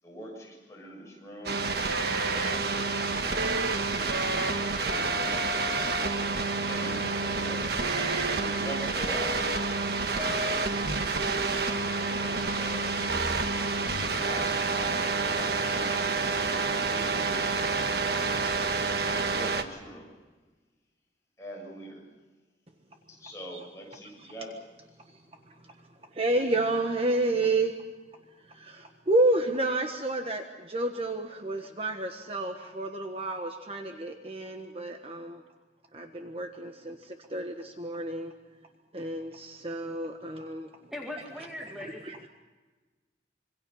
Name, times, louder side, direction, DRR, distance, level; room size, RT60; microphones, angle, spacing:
voice 1, 0.0-1.6 4.4-5.4 6.5-9.6 10.0-10.9 12.2-13.0 13.8-16.0 16.8-17.6 19.3-20.1 21.4-22.1 23.1-24.6, equal, 15° left, -2 dB, 7.4 m, -43 dB
sound 1, 1.5-19.6, right 3 dB, 60° right, 1.5 m, -28 dB
voice 2, 26.1-27.7 28.5-35.4 35.9-38.3 38.9-40.7 41.8-42.3, right 2 dB, 35° right, 4 dB, 1.4 m, -30 dB
voice 3, 40.9-42.0, left 1 dB, ahead, -1 dB, 2.2 m, -39 dB
26.5 x 25.0 x 5.7 m, 1.3 s
head